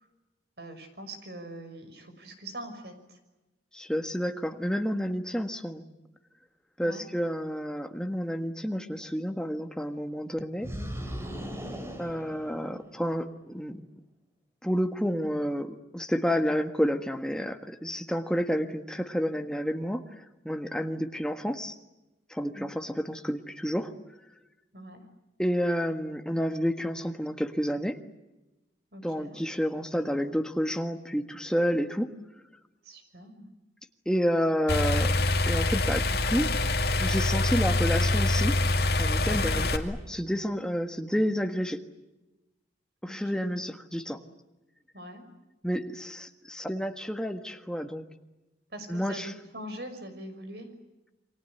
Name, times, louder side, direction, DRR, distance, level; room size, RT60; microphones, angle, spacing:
voice 1, 0.6-3.2 6.8-7.0 22.5-22.7 24.7-25.0 28.9-29.4 32.8-33.5 39.3-39.5 43.0-43.5 44.9-45.2 48.7-50.7, right 1 dB, 60° right, 8 dB, 5.9 m, -43 dB
voice 2, 3.7-5.8 6.8-10.7 12.0-13.9 14.6-21.8 22.3-23.9 25.4-28.0 29.0-32.1 34.0-35.2 35.5-36.5 37.0-38.6 39.0-41.8 43.0-44.2 45.6-48.0 48.9-49.3, equal, 5° left, 6 dB, 1.5 m, -30 dB
sound 1, 10.6-13.1, equal, 15° right, 3.1 m, -38 dB
sound 2, 34.7-39.8, left 2 dB, 60° left, 2.4 m, -25 dB
29.0 x 24.0 x 8.1 m, 1.0 s
head